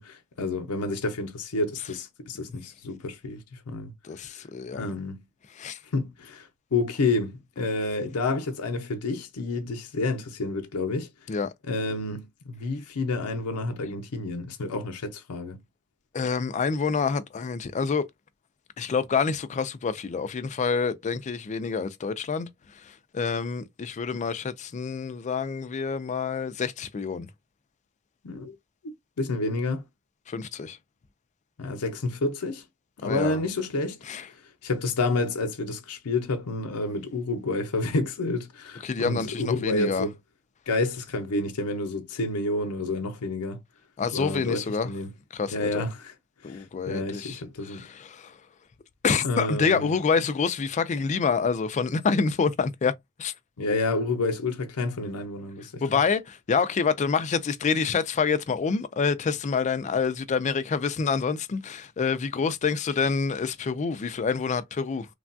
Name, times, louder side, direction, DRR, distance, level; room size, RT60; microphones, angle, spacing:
voice 1, 0.0-3.9 4.7-5.2 5.9-11.1 11.6-15.6 28.2-28.5 29.2-29.8 31.6-32.6 33.0-34.0 34.6-40.1 40.7-43.6 44.1-45.1 45.5-46.1 46.4-47.9 49.2-49.9 53.6-55.8, left 2 dB, 90° left, 0.7 m, -29 dB
voice 2, 4.0-4.9 5.6-5.8 11.3-11.5 16.1-18.1 18.8-22.5 22.8-27.3 30.3-30.8 33.0-33.4 34.0-34.3 38.8-40.1 44.0-44.9 45.3-45.9 46.4-48.3 49.0-52.9 53.2-53.3 55.8-65.1, left 5 dB, 35° left, 0.3 m, -27 dB
3.3 x 2.2 x 2.5 m
head